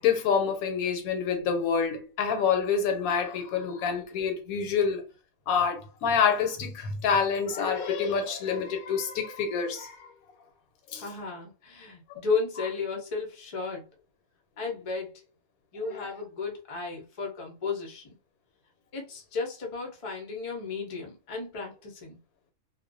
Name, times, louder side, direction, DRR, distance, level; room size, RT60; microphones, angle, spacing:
voice 1, 0.0-5.0 5.5-10.1 10.9-11.0 15.9-16.0, left 6 dB, 80° left, 1.0 m, -27 dB
voice 2, 10.9-13.9 14.6-15.3 15.7-18.2 18.9-22.2, left 4 dB, 40° left, 0.5 m, -34 dB
2.4 x 2.1 x 2.5 m
omnidirectional pair, 1.5 m